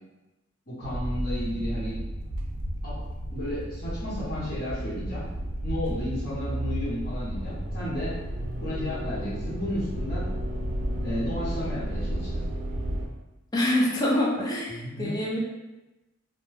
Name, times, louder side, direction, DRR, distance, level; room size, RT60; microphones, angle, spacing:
voice 1, 0.7-2.0 2.8-3.0 3.3-5.3 5.6-8.2 8.6-10.3 11.0-12.4 14.7-15.2, left 1 dB, 50° left, -10 dB, 0.9 m, -33 dB
sound 1, 0.8-13.0, equal, 70° right, 0.4 m, -32 dB
voice 2, 13.5-15.4, left 1 dB, 20° left, -3 dB, 0.5 m, -25 dB
2.2 x 2.0 x 3.2 m, 1.0 s
head